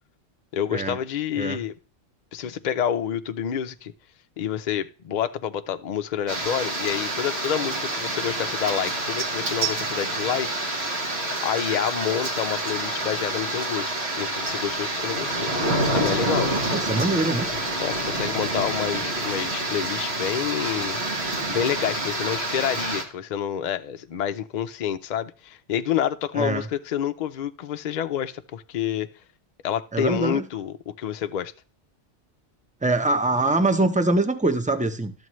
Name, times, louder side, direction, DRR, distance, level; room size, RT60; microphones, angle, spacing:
voice 1, 0.5-1.7 2.3-3.9 4.4-10.5 11.4-15.5 15.9-16.5 17.8-21.0 21.5-29.1 29.6-31.5, left 9 dB, 55° left, 9 dB, 0.5 m, -28 dB
sound 1, 6.3-23.0, right 2 dB, 60° right, 1.6 m, -27 dB
voice 2, 16.7-17.5 26.3-26.6 29.9-30.4 32.8-35.1, right 2 dB, 10° right, 8 dB, 0.4 m, -23 dB
12.5 x 7.1 x 3.1 m, 0.39 s
omnidirectional pair, 1.2 m